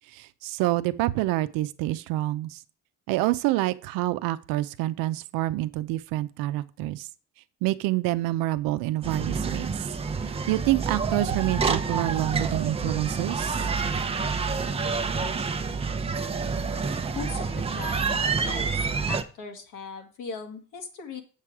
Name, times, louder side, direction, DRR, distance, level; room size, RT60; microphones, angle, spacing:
voice 1, 0.4-2.6 3.1-7.1 7.6-9.7 10.5-13.5, right 17 dB, 85° right, 0.7 m, -27 dB
sound 1, 9.0-19.2, right 5 dB, 15° right, 0.7 m, -28 dB
voice 2, 17.2-18.7 19.1-21.2, left 5 dB, 65° left, 1.9 m, -39 dB
7.6 x 7.5 x 4.7 m
cardioid pair, 120°, 33 cm